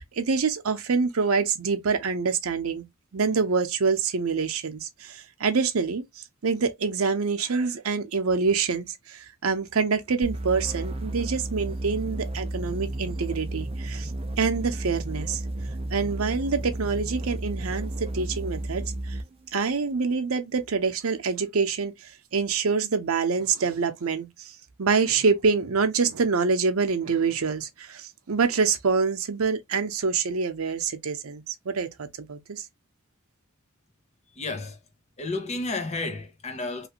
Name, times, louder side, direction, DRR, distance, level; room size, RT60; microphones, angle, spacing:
voice 1, 0.0-2.9 3.1-14.1 14.4-15.4 15.9-19.2 19.5-21.9 22.3-24.5 24.8-32.6, right 5 dB, 85° right, 0.7 m, -26 dB
sound 1, 10.2-19.3, right 1 dB, 25° right, 0.5 m, -32 dB
voice 2, 34.4-34.8 35.2-36.9, left 2 dB, 30° left, 0.7 m, -31 dB
3.2 x 2.5 x 2.9 m
head